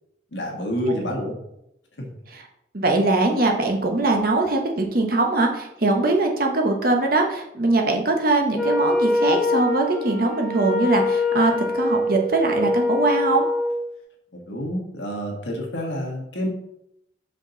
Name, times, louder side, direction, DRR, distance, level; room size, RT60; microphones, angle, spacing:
voice 1, 0.3-1.4 2.0-2.1 14.3-16.5, equal, 75° left, 0 dB, 1.6 m, -28 dB
voice 2, 2.7-13.5, right 2 dB, 50° right, 3 dB, 1.0 m, -21 dB
Wind instrument woodwind instrument, 8.5-13.8, left 2 dB, 5° left, 1.7 m, -24 dB
6.0 x 5.0 x 4.0 m, 0.79 s
head